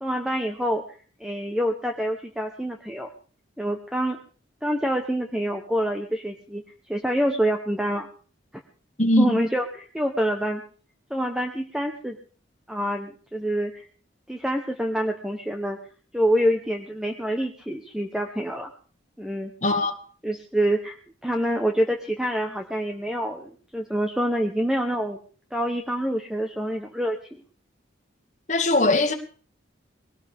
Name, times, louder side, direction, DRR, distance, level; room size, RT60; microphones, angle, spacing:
voice 1, 0.0-3.1 3.6-4.2 4.6-6.6 6.9-8.1 9.2-10.6 11.1-12.2 12.7-13.8 14.3-15.8 16.1-18.7 19.2-19.5 20.2-21.0 21.2-25.2 25.5-27.4, equal, 5° right, 1.0 m, -26 dB
voice 2, 9.0-9.4 19.6-20.0 28.5-29.1, left 2 dB, 35° left, 2.0 m, -20 dB
21.0 x 18.0 x 3.6 m
head